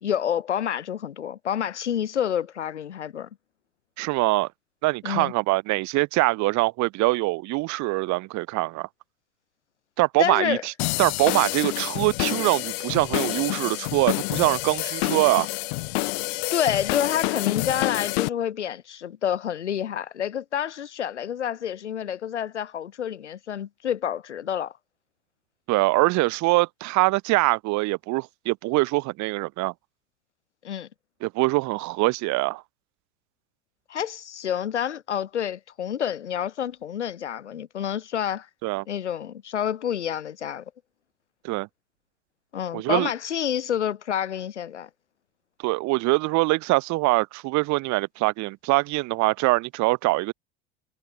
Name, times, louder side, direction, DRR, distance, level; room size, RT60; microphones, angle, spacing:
voice 1, 0.0-3.3 5.0-5.3 10.2-10.6 16.5-24.7 30.6-30.9 33.9-38.5 38.9-40.6 42.5-44.9, left 9 dB, 85° left, 1.7 m, -28 dB
voice 2, 4.0-4.5 4.8-8.9 10.0-10.7 11.0-15.5 25.7-29.7 31.2-32.6 38.6-38.8 41.4-41.7 42.7-43.1 45.6-50.3, right 22 dB, 55° right, 3.0 m, -23 dB
sound 1, 10.8-18.3, left 25 dB, 65° left, 2.4 m, -28 dB
hypercardioid pair, 75°, 34 cm